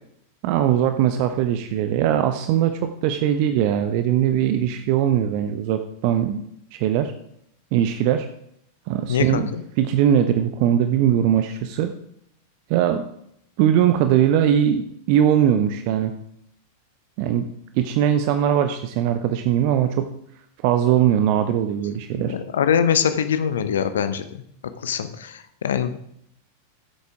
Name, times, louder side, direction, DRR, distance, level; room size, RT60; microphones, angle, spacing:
voice 1, 0.4-6.4 6.7-7.1 7.7-8.3 8.9-9.5 9.8-11.9 12.7-13.0 13.6-16.1 17.2-17.5 17.7-20.1 20.6-22.3, right 10 dB, 45° right, 9 dB, 0.7 m, -20 dB
voice 2, 9.1-9.6 22.2-24.2 24.8-26.0, left 8 dB, 65° left, 11 dB, 0.8 m, -23 dB
15.5 x 8.1 x 3.6 m, 0.72 s
figure-of-eight pair, 90°, 0 cm